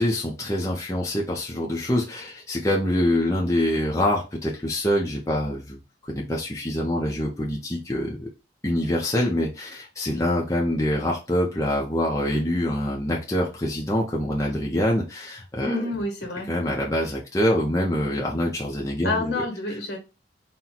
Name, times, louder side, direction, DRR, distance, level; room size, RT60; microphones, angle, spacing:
voice 1, 0.0-8.3 8.6-15.8 16.5-19.4, left 1 dB, 15° left, 0.7 m, -25 dB
voice 2, 15.6-16.5 19.0-20.0, left 2 dB, 65° left, 1.4 m, -28 dB
4.3 x 2.2 x 4.0 m
head